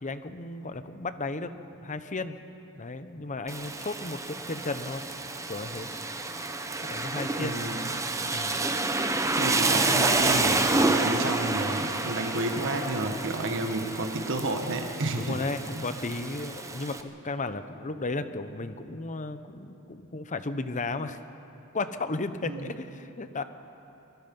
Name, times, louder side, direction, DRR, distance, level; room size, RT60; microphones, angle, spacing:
voice 1, 0.0-2.4 2.8-5.0 5.5-5.9 6.8-7.6 8.3-8.6 15.2-21.2 21.7-23.4, left 3 dB, 35° left, 10 dB, 0.9 m, -34 dB
Rain, 3.5-17.0, right 2 dB, 15° right, 1.0 m, -29 dB
voice 2, 7.4-7.9 9.4-15.4 15.7-15.8 22.4-22.7, right 2 dB, 60° right, 5 dB, 1.6 m, -31 dB
25.0 x 21.0 x 5.4 m, 2.9 s
head